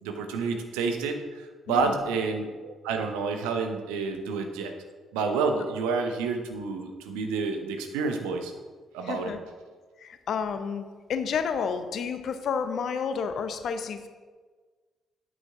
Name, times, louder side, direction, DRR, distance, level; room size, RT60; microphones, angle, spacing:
voice 1, 0.0-4.7 5.1-8.5 8.9-9.4, right 4 dB, 70° right, 5 dB, 0.9 m, -29 dB
voice 2, 1.7-2.0 9.0-9.4 10.0-10.8 11.1-14.1, left 6 dB, 55° left, 9 dB, 0.7 m, -30 dB
9.2 x 8.5 x 3.6 m, 1.4 s
figure-of-eight pair, 40°, 0 cm